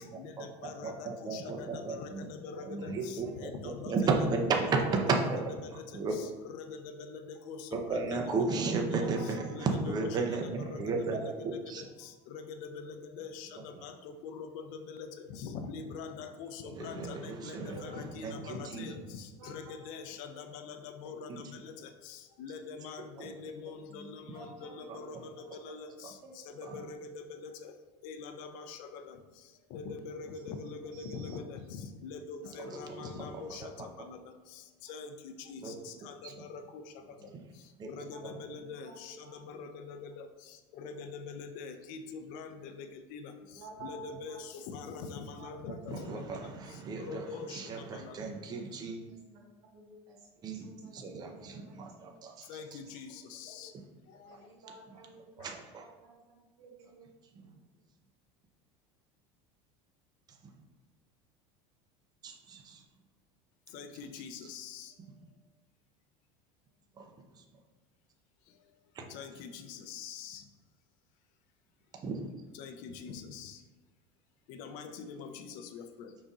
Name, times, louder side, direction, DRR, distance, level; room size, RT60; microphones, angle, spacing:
voice 1, 0.0-4.3 4.6-5.3 5.6-27.8 28.0-48.2 52.4-53.8 54.1-54.5 55.4-55.5 63.7-65.2 68.5-68.6 69.1-70.5 72.5-73.6 74.5-76.2, left 5 dB, 65° left, 7 dB, 0.5 m, -44 dB
voice 2, 0.8-2.3 2.6-5.4 5.9-6.2 7.7-11.8 16.8-17.8 18.2-18.9 21.3-21.4 23.2-23.3 26.6-26.8 32.7-33.6 35.6-35.7 36.2-36.3 37.8-37.9 38.2-38.3 45.9-49.0 50.4-52.6 53.7-53.8 55.4-55.8 62.2-62.8 67.0-67.1 69.0-69.1 72.0-72.2, right 4 dB, 25° right, 2 dB, 0.6 m, -34 dB
voice 3, 8.9-9.7 11.5-11.6 17.5-18.5 18.8-19.0 19.4-20.4 23.9-25.4 26.2-26.8 30.4-30.5 30.9-31.4 32.4-33.4 37.2-37.3 38.1-39.4 43.5-44.4 44.9-45.1 45.4-45.5 46.3-46.7 49.1-50.3 50.5-52.1 52.4-53.0 54.2-55.4 55.7-57.0, right 3 dB, 80° right, -2 dB, 1.4 m, -52 dB
5.0 x 3.9 x 2.4 m, 1.3 s
supercardioid pair, 130°, 15 cm